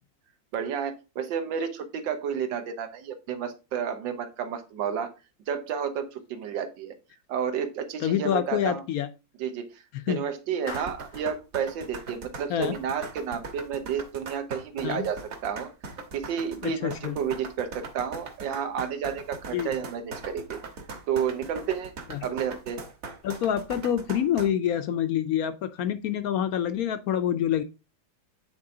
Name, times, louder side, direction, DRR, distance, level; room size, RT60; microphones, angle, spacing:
voice 1, 0.5-5.1 5.5-6.9 7.3-8.8 9.4-15.7 16.1-20.6 21.1-21.9 22.2-22.8, right 7 dB, 75° right, 8 dB, 1.7 m, -31 dB
voice 2, 8.0-9.1 9.9-10.2 12.5-12.8 14.8-15.1 16.6-17.2 19.5-19.7 22.1-22.2 23.2-27.6, left 10 dB, 70° left, 11 dB, 0.8 m, -27 dB
Clapping, 10.7-11.3, left 3 dB, 40° left, 0.4 m, -40 dB
sound 1, 10.7-24.5, right 3 dB, 50° right, 1.6 m, -40 dB
8.6 x 4.4 x 3.7 m, 0.30 s
omnidirectional pair, 2.1 m